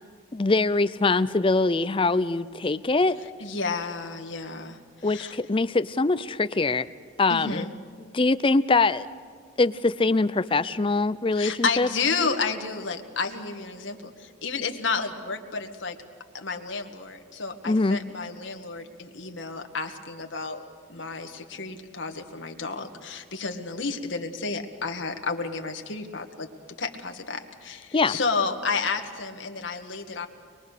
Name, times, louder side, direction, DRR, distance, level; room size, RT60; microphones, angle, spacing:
voice 1, 0.3-3.2 5.0-6.9 7.2-7.7 8.1-9.1 9.6-11.9 17.7-18.0 27.9-28.2, left 3 dB, 25° left, 14 dB, 0.5 m, -23 dB
voice 2, 3.4-5.4 7.3-7.7 11.3-16.0 16.3-20.6 20.9-26.5 26.8-30.3, left 4 dB, 65° left, 4 dB, 1.7 m, -31 dB
23.5 x 22.5 x 6.7 m, 2.1 s
head